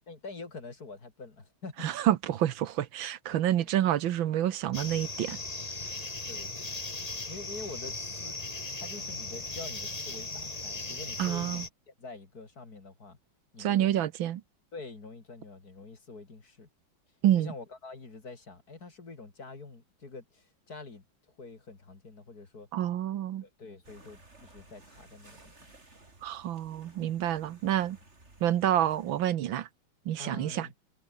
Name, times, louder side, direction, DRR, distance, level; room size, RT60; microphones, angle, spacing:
voice 1, 0.1-1.9 3.3-3.7 6.3-10.3 10.5-13.2 13.5-14.0 14.7-16.7 17.3-22.7 23.4-25.7 27.2-27.3 30.2-30.8, left 3 dB, 50° left, 3.9 m, -46 dB
voice 2, 1.8-5.4 11.2-11.6 13.6-14.4 17.2-17.5 22.7-23.4 26.2-28.0 28.4-29.7 30.1-30.7, right 11 dB, 80° right, 1.7 m, -28 dB
sound 1, 4.7-11.7, left 3 dB, 20° left, 1.9 m, -38 dB
sound 2, 23.8-29.2, right 2 dB, 35° right, 4.5 m, -56 dB
omnidirectional pair, 2.2 m